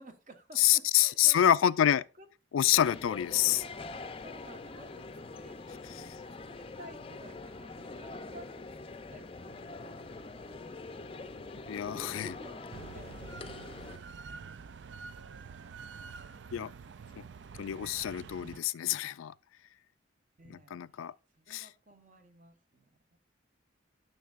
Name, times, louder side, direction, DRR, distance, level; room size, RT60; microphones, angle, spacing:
voice 1, 0.0-1.5 2.2-2.3 3.4-3.7 4.2-5.6 5.9-6.0 6.5-8.7 9.1-16.9 20.4-22.8 23.1-23.2, right 1 dB, 40° right, 1.2 m, -55 dB
voice 2, 0.6-2.1 2.5-3.6 5.9-6.1 11.7-12.3 16.5-16.7 17.2-17.3 17.6-19.3 20.5-21.1 21.5-21.7, left 11 dB, 85° left, 0.3 m, -27 dB
sound 1, 2.7-14.0, left 3 dB, 30° left, 0.5 m, -44 dB
sound 2, 12.7-18.6, right 5 dB, 60° right, 0.4 m, -47 dB
12.5 x 6.5 x 2.5 m
head